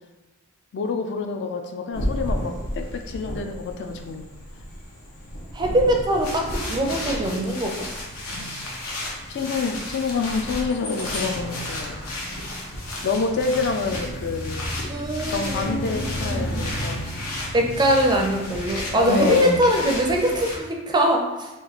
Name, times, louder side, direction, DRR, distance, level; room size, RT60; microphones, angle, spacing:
voice 1, 0.7-4.3 8.3-8.6 9.3-12.0 13.0-14.6 15.3-17.1 18.9-19.6, left 4 dB, 55° left, 5 dB, 0.3 m, -27 dB
sound 1, 1.9-20.6, left 1 dB, 85° left, 0.9 m, -32 dB
voice 2, 5.5-7.7 14.9-16.6 17.5-21.5, right 1 dB, 20° right, 1 dB, 0.4 m, -22 dB
3.0 x 2.5 x 3.9 m, 1.1 s
head